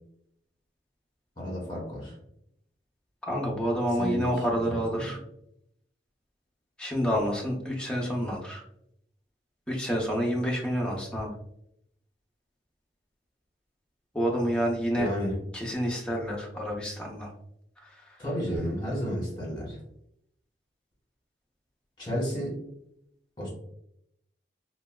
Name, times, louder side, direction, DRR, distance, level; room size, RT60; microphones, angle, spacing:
voice 1, 1.4-2.1 4.0-4.3 4.6-5.2 15.0-15.4 18.2-19.8 22.0-22.6 23.4-23.5, equal, 25° left, -4 dB, 1.1 m, -32 dB
voice 2, 3.2-5.2 6.8-8.6 9.7-11.3 14.1-15.1 15.5-17.3 17.8-17.9, equal, 5° left, -2 dB, 0.5 m, -28 dB
3.1 x 2.2 x 2.2 m, 0.75 s
head